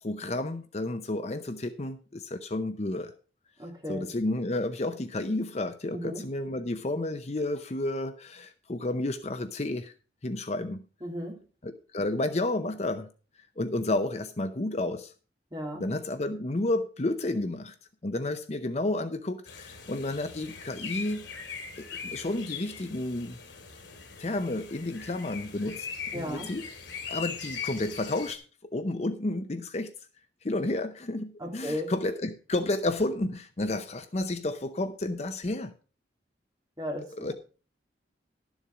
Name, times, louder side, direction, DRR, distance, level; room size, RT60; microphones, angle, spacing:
voice 1, 0.0-3.1 3.9-9.9 10.2-10.8 11.6-13.1 13.6-15.1 15.8-17.7 18.0-21.3 21.8-23.4 24.2-25.9 26.1-26.6 27.1-29.9 30.4-35.7 37.1-37.3, left 2 dB, 35° left, 10 dB, 0.6 m, -31 dB
voice 2, 3.6-4.1 5.9-6.2 11.0-11.4 15.5-15.8 26.1-26.5 31.4-31.9 36.8-37.3, equal, 20° right, -1 dB, 3.1 m, -35 dB
sound 1, 19.4-28.3, left 6 dB, 85° left, 2.4 m, -41 dB
12.0 x 7.2 x 4.9 m, 0.36 s
head